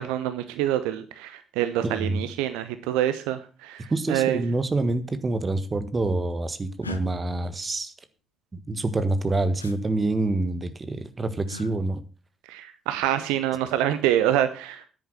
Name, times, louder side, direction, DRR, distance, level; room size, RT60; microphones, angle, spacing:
voice 1, 0.0-4.4 12.5-14.8, right 12 dB, 70° right, 11 dB, 0.8 m, -26 dB
voice 2, 1.8-2.2 3.9-7.9 8.5-12.0, right 2 dB, 30° right, 11 dB, 1.5 m, -26 dB
sound 1, 6.8-7.0 9.6-9.8 11.5-11.7 13.5-13.9, left 3 dB, 85° left, 0.7 m, -38 dB
10.0 x 9.0 x 6.2 m, 0.35 s
figure-of-eight pair, 45°, 0 cm